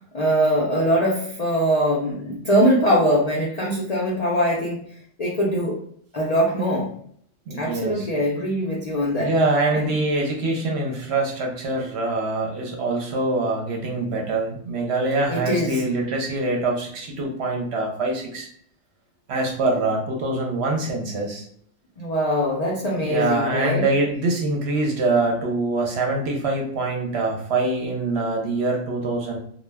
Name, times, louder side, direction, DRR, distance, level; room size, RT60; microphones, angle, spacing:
voice 1, 0.1-4.8 5.2-5.8 6.1-6.9 7.6-9.3 9.7-9.9 15.3-15.8 22.0-23.9, equal, 65° left, -3 dB, 0.4 m, -22 dB
voice 2, 7.5-8.1 9.2-18.5 19.3-21.5 23.0-29.4, right 2 dB, 60° right, 0 dB, 0.8 m, -24 dB
2.3 x 2.1 x 3.2 m, 0.63 s
omnidirectional pair, 1.4 m